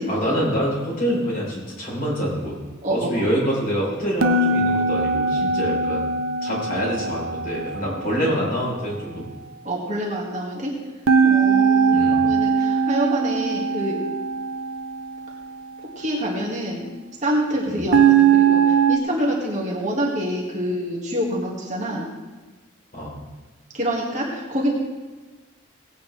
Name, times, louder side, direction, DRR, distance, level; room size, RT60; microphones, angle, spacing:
voice 1, 0.1-2.5 2.9-6.1 6.4-9.3 11.9-12.2 17.7-17.8 22.9-23.1, equal, 45° left, -4 dB, 4.3 m, -26 dB
voice 2, 2.8-3.3 8.0-8.2 9.6-10.7 11.2-14.0 16.0-16.9 17.2-22.1 23.7-24.7, equal, 35° right, -3 dB, 2.1 m, -26 dB
sound 1, 4.2-8.4 11.1-15.2 17.9-19.0, right 5 dB, 85° right, 0.7 m, -20 dB
18.0 x 9.0 x 3.4 m, 1.3 s
head